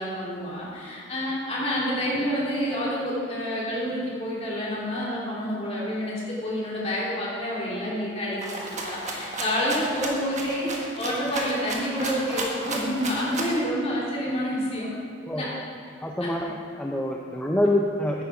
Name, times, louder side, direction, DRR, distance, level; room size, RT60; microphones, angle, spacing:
voice 1, 0.0-14.9 15.3-15.5 16.2-16.3, equal, 30° left, -6 dB, 2.9 m, -28 dB
Rattle (instrument), 8.4-13.6, right 2 dB, 35° right, 1.3 m, -33 dB
voice 2, 15.3-15.6 16.0-18.2, left 1 dB, 5° left, 0 dB, 0.5 m, -26 dB
10.0 x 9.5 x 4.9 m, 2.6 s
head